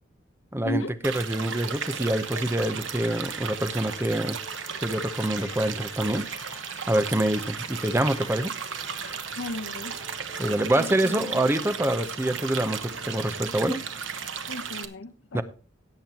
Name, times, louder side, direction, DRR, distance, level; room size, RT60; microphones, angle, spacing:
voice 1, 0.5-4.4 4.8-6.2 6.9-8.5 10.4-13.8 15.3-15.4, right 1 dB, 15° right, 0.7 m, -26 dB
sound 1, 1.0-14.8, right 7 dB, 85° right, 1.0 m, -35 dB
sound 2, 1.1-14.8, left 4 dB, 35° left, 1.5 m, -49 dB
voice 2, 9.4-9.9 10.8-11.4 14.5-15.4, left 1 dB, 80° left, 0.8 m, -35 dB
17.5 x 7.7 x 2.9 m
head